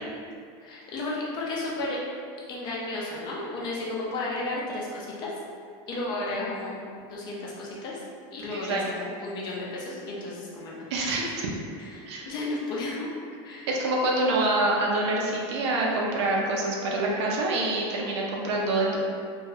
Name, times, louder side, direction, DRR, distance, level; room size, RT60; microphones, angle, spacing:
voice 1, 0.6-2.0 2.5-5.3 5.9-6.7 7.1-8.0 8.3-10.8 11.0-11.2 11.8-13.1 13.4-13.7, left 2 dB, 30° left, -5 dB, 0.5 m, -33 dB
voice 2, 8.5-8.8 10.9-11.2 12.1-12.3 13.7-19.0, right 2 dB, 80° right, -2 dB, 0.6 m, -26 dB
2.6 x 2.3 x 2.9 m, 2.2 s
supercardioid pair, 165°, 14 cm